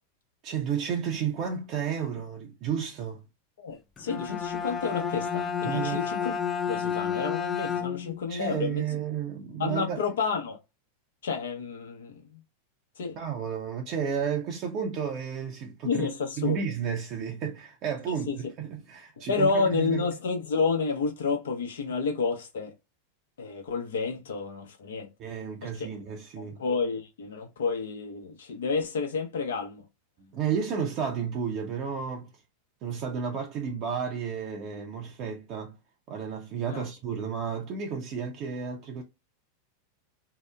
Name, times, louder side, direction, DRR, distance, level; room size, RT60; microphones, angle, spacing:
voice 1, 0.4-3.2 5.6-6.1 8.3-10.0 13.2-16.1 16.4-20.1 25.2-26.6 30.3-32.3 32.8-35.8 36.1-39.0, right 7 dB, 45° right, 0.6 m, -32 dB
voice 2, 3.6-6.3 6.7-8.8 9.6-10.6 11.2-12.4 13.0-13.1 15.8-16.6 18.1-18.4 19.3-22.7 23.4-25.1 25.6-26.1 26.4-29.8 36.7-36.8, left 4 dB, 80° left, 0.7 m, -30 dB
Bowed string instrument, 4.0-8.3, left 7 dB, 25° left, 0.4 m, -31 dB
2.8 x 2.0 x 2.2 m
hypercardioid pair, 100°, 0 cm